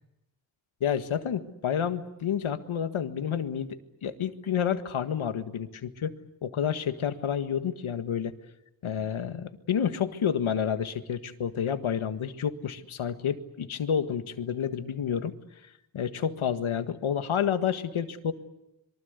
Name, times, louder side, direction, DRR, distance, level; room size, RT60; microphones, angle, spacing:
voice 1, 0.8-6.2 6.4-8.3 8.8-15.4 15.9-18.3, left 8 dB, 85° left, 9 dB, 1.8 m, -29 dB
26.0 x 23.5 x 8.2 m, 0.89 s
wide cardioid pair, 150°, 47 cm